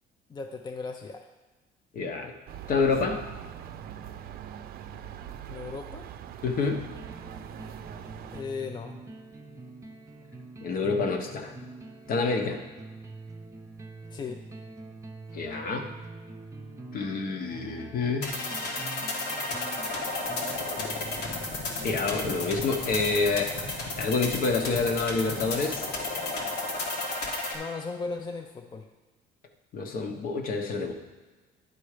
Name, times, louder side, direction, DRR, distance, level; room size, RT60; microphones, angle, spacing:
voice 1, 0.3-1.3 5.5-6.1 8.3-8.9 12.4-12.6 14.1-14.4 27.5-28.9, left 4 dB, 25° left, 5 dB, 0.5 m, -37 dB
voice 2, 1.9-2.3 2.7-3.2 6.4-6.9 10.6-11.5 12.1-12.6 15.3-15.9 16.9-18.4 21.8-23.6 24.0-25.9 29.7-30.9, left 4 dB, 55° left, 4 dB, 1.1 m, -27 dB
sound 1, 2.5-8.4, right 10 dB, 65° right, 0.5 m, -42 dB
sound 2, 7.0-22.9, right 2 dB, 20° right, 0.7 m, -45 dB
sound 3, 18.2-27.6, left 2 dB, 75° left, 1.5 m, -33 dB
10.5 x 4.2 x 5.0 m, 1.3 s
cardioid pair, 110°, 17 cm